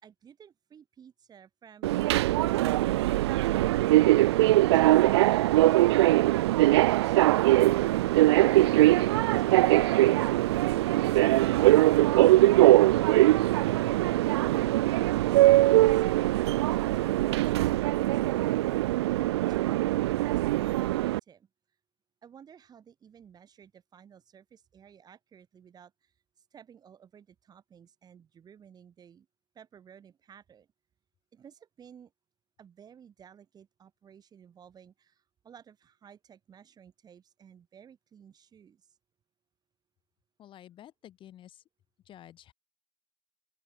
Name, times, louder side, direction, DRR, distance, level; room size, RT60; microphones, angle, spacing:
voice 1, 0.0-4.1 9.3-10.5 15.3-21.5 22.2-29.3 29.5-30.7 31.3-32.1 32.6-39.0, right 8 dB, 30° right, 5.9 m, -55 dB
Subway metro underground, 1.8-21.2, right 16 dB, 80° right, 0.4 m, -22 dB
voice 2, 40.4-41.6 42.0-42.5, left 11 dB, 40° left, 2.3 m, -51 dB
open air
hypercardioid pair, 105°, 14 cm